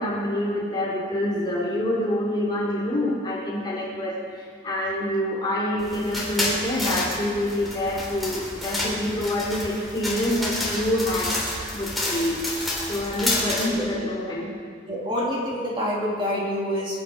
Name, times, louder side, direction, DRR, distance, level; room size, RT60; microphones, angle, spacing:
voice 1, 0.0-4.2 4.6-12.4 12.9-14.5, left 1 dB, 20° left, -5 dB, 3.4 m, -26 dB
sound 1, 5.8-13.7, left 1 dB, ahead, 3.5 m, -29 dB
voice 2, 13.4-14.1 14.9-17.0, equal, 25° right, -4 dB, 2.7 m, -27 dB
26.5 x 10.5 x 5.3 m, 2.2 s
head